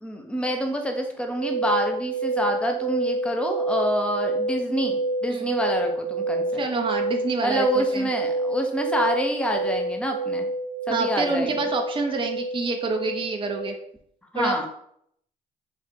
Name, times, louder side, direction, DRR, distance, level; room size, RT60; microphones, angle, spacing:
voice 1, 0.0-6.4 7.4-10.5 10.9-11.5 14.3-14.7, equal, 5° left, 3 dB, 0.8 m, -27 dB
sound 1, 1.3-13.7, right 2 dB, 45° left, 1.3 m, -28 dB
voice 2, 6.6-8.1 10.9-13.7 14.3-14.7, right 3 dB, 25° right, 3 dB, 0.6 m, -27 dB
3.6 x 2.5 x 4.4 m, 0.70 s
hypercardioid pair, 50°, 21 cm